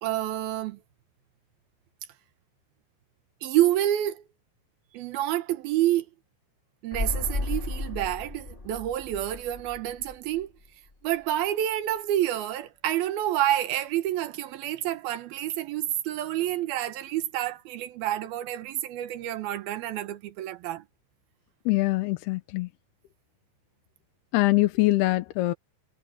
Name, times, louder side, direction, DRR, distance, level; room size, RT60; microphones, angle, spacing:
voice 1, 0.0-0.8 3.4-4.2 4.9-6.1 6.8-10.5 11.0-20.8, right 13 dB, 75° right, 3.0 m, -28 dB
sound 1, 6.9-10.7 10.9-11.0, left 2 dB, 25° left, 1.0 m, -34 dB
voice 2, 21.7-22.7 24.3-25.5, left 20 dB, 90° left, 2.9 m, -23 dB
omnidirectional pair, 4.5 m